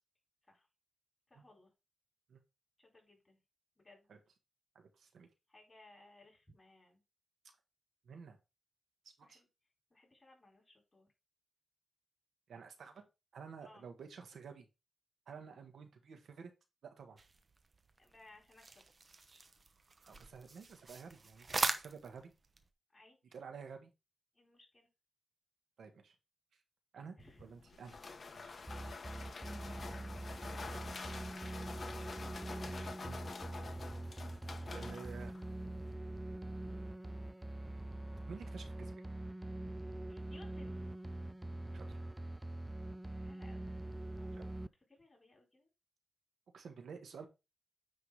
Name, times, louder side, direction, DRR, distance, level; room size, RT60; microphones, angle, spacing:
voice 1, 1.3-1.7 2.8-3.4 3.8-4.1 5.5-7.0 9.2-9.5 9.9-11.1 13.6-13.9 18.0-18.9 22.9-23.2 24.3-24.9 27.2-27.4 31.9-32.1 34.6-35.2 36.5-36.9 40.1-40.8 43.2-44.5 44.9-45.7, left 2 dB, 20° left, 0 dB, 4.3 m, -62 dB
voice 2, 4.7-5.3 8.0-8.4 9.0-9.4 12.5-13.0 13.3-14.7 15.3-16.5 16.8-17.2 20.1-22.3 23.3-23.9 25.8-26.1 26.9-28.0 28.3-28.6 30.7-30.9 33.0-33.2 34.7-35.3 38.3-38.9 41.7-42.0 44.4-44.5 46.5-47.3, right 6 dB, 85° right, 5 dB, 1.5 m, -51 dB
sound 1, 17.2-22.7, right 3 dB, 40° right, 0.9 m, -42 dB
sound 2, 27.2-35.9, left 4 dB, 45° left, 1.1 m, -48 dB
sound 3, 28.7-44.7, right 1 dB, 10° right, 0.3 m, -44 dB
9.4 x 3.8 x 4.9 m, 0.27 s
wide cardioid pair, 110°, 0 cm